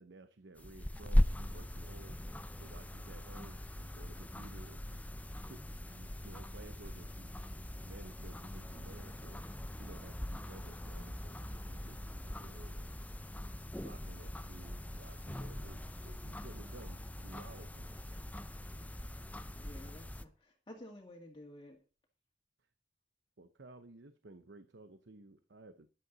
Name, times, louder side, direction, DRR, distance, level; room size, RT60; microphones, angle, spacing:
voice 1, 0.0-12.9 13.8-17.9 22.6-22.7 23.4-25.9, right 2 dB, 85° right, 11 dB, 0.9 m, -55 dB
sound 1, 0.6-20.2, left 1 dB, 10° left, 0.5 m, -39 dB
voice 2, 19.5-21.8, left 1 dB, 25° left, -1 dB, 2.1 m, -52 dB
14.5 x 11.0 x 4.0 m, 0.35 s
head